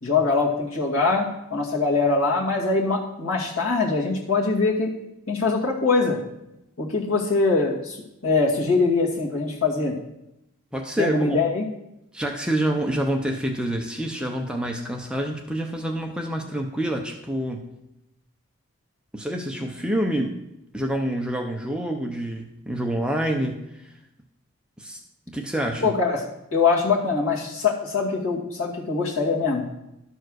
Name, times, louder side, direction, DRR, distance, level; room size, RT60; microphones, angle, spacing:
voice 1, 0.0-4.9 5.3-6.2 6.8-8.0 8.2-10.0 11.0-11.7 25.8-26.2 26.5-29.8, left 4 dB, 75° left, -3 dB, 2.2 m, -23 dB
voice 2, 10.7-11.4 12.1-17.7 19.1-20.3 20.7-23.8 24.8-25.0 25.3-25.9, right 1 dB, 5° right, 2 dB, 0.7 m, -27 dB
12.0 x 4.6 x 6.4 m, 0.87 s
head